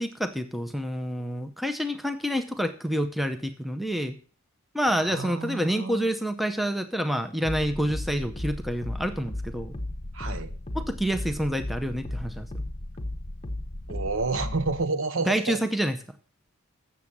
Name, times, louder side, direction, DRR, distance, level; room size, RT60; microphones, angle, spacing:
voice 1, 0.0-4.2 4.7-9.7 10.7-12.6 15.3-16.0, equal, ahead, 0.6 m, -28 dB
voice 2, 4.9-6.1 10.1-10.5 13.9-15.6, right 3 dB, 60° right, 0.9 m, -30 dB
sound 1, 7.4-14.8, left 1 dB, 30° left, 0.9 m, -35 dB
8.1 x 7.0 x 7.2 m
head